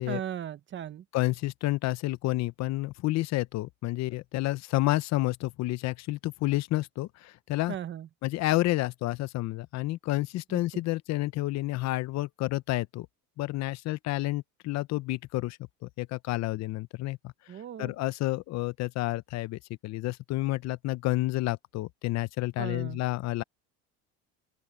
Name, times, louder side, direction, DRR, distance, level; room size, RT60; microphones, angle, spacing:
voice 1, 0.1-1.0 7.7-8.1 10.5-10.6 17.5-17.9 22.6-23.0, right 10 dB, 35° right, 1.1 m, -37 dB
voice 2, 1.1-7.7 8.2-13.1 13.4-23.4, left 18 dB, 50° left, 0.8 m, -30 dB
open air
cardioid pair, 125°, 34 cm